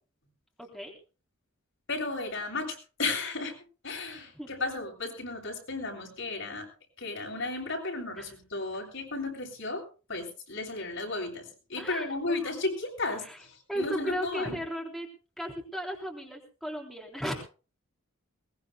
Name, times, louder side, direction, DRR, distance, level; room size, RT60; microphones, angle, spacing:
voice 1, 0.6-0.9 4.3-4.5 8.2-8.3 11.8-12.5 13.3-13.4 13.7-15.1 15.4-17.4, equal, ahead, -1 dB, 3.6 m, -35 dB
voice 2, 1.9-3.5 3.8-6.7 7.0-9.8 10.1-14.6, left 3 dB, 65° left, 0 dB, 7.7 m, -34 dB
22.0 x 21.0 x 2.2 m, 0.36 s
head